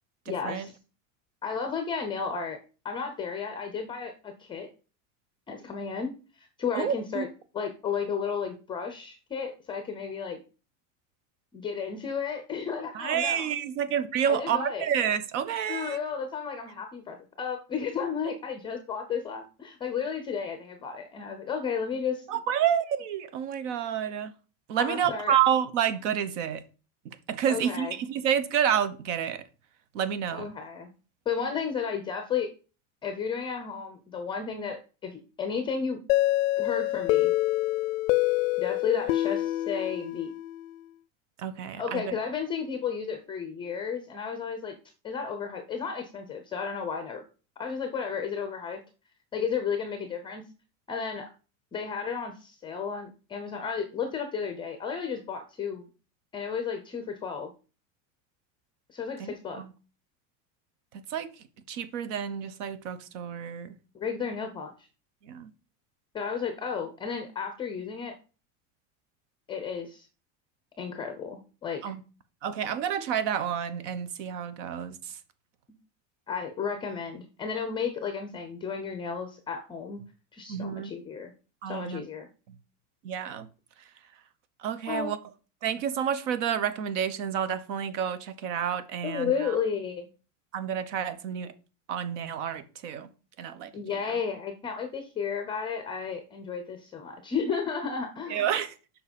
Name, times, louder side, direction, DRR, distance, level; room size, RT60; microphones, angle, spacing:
voice 1, 0.3-0.7 1.4-2.6 2.8-4.7 5.5-7.3 7.5-10.4 11.5-13.5 14.3-14.9 15.7-22.3 24.8-25.4 27.5-27.9 30.3-30.9 31.3-32.5 33.0-36.0 36.6-37.3 38.6-40.3 41.8-44.7 45.0-47.2 47.6-48.8 49.3-50.4 50.9-51.3 51.7-55.8 56.3-57.5 58.9-59.6 63.9-64.9 66.1-68.1 69.5-70.1 70.8-71.8 76.3-80.0 80.3-81.3 81.7-82.3 84.9-85.1 89.0-90.1 93.7-98.5, left 6 dB, 15° left, 0.5 m, -33 dB
voice 2, 6.7-7.2 12.9-16.0 22.3-24.3 24.7-26.6 27.0-29.4 29.9-30.5 41.4-42.2 59.2-59.7 60.9-61.3 61.7-63.8 65.2-65.5 71.8-72.0 72.4-75.2 80.5-80.9 81.6-82.0 83.0-83.5 84.6-85.2 85.6-89.5 90.5-91.5 91.9-93.1 93.4-93.7 94.1-94.2 98.3-98.7, right 9 dB, 70° right, 1.1 m, -29 dB
sound 1, 36.1-40.8, left 16 dB, 90° left, 0.5 m, -26 dB
7.2 x 5.6 x 5.2 m
cardioid pair, 180°, 38 cm